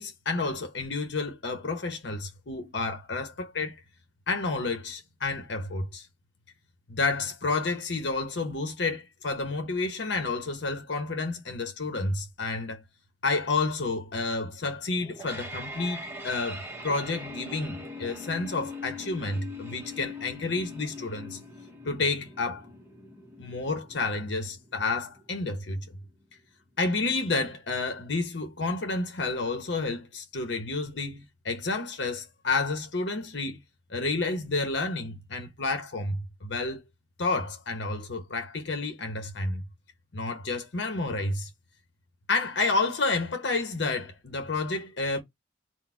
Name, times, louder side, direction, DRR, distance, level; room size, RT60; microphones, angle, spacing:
voice 1, 0.0-3.8 4.3-6.1 6.9-12.8 13.2-21.4 21.8-22.7 23.4-25.9 26.8-33.6 33.9-36.8 37.2-39.6 40.1-41.5 42.3-45.2, left 3 dB, 65° left, 0.9 m, -30 dB
sound 1, 14.9-25.9, left 2 dB, 15° right, 0.9 m, -42 dB
4.1 x 2.2 x 4.3 m
head